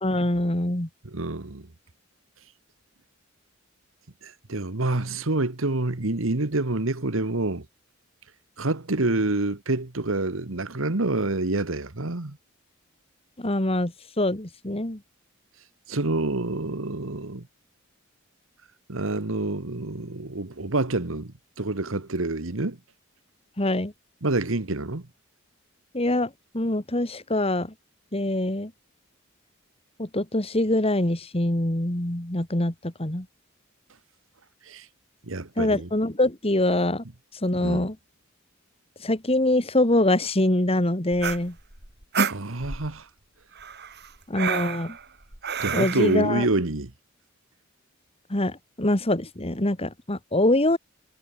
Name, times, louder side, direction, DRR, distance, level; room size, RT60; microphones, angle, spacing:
voice 1, 0.0-0.9 13.4-15.0 23.6-23.9 25.9-27.7 28.1-28.7 30.0-33.3 35.6-37.0 37.4-38.0 39.0-41.6 44.3-45.0 45.7-46.5 48.3-50.8, left 1 dB, 30° left, 2.3 m, -24 dB
voice 2, 1.0-1.7 4.2-7.6 8.6-12.4 15.9-17.4 18.9-22.8 24.2-25.1 34.7-34.9 35.3-35.9 37.6-37.9 42.3-43.1 45.6-46.9, right 2 dB, 70° right, 1.6 m, -27 dB
sound 1, 41.1-42.9 43.6-46.2, right 5 dB, 55° right, 5.1 m, -30 dB
head